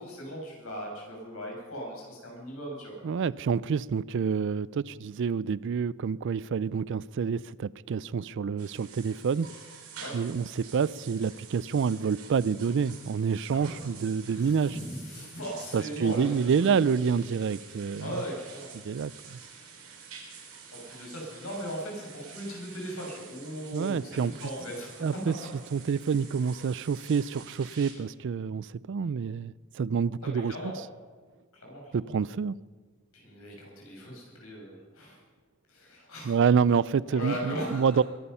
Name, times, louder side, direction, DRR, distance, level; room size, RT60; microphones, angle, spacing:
voice 1, 0.0-3.0 10.0-10.1 13.5-13.8 14.3-16.8 18.0-18.7 20.7-25.2 30.2-30.8 31.5-31.8 33.1-35.2 35.7-36.4 37.1-37.9, equal, 80° left, -1 dB, 6.6 m, -38 dB
voice 2, 3.0-9.5 10.1-14.8 15.7-18.2 18.8-19.4 23.7-24.3 25.0-25.3 25.7-30.5 31.9-32.6 36.2-38.0, right 6 dB, 60° right, 22 dB, 0.4 m, -28 dB
sound 1, 8.6-27.9, right 6 dB, 90° right, 3.6 m, -48 dB
22.0 x 11.5 x 5.6 m, 1.5 s
head